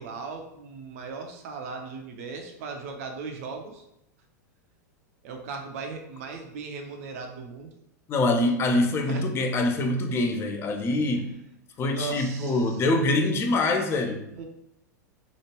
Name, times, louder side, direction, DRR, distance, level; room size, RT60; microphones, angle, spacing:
voice 1, 0.0-3.8 5.2-7.7 9.1-9.2 11.1-11.3 11.9-12.8 14.3-14.4, right 4 dB, 55° right, 4 dB, 0.5 m, -38 dB
voice 2, 8.1-11.3 11.8-14.2, left 2 dB, 25° left, 4 dB, 0.5 m, -24 dB
3.0 x 2.4 x 3.0 m, 0.81 s
figure-of-eight pair, 90°, 10 cm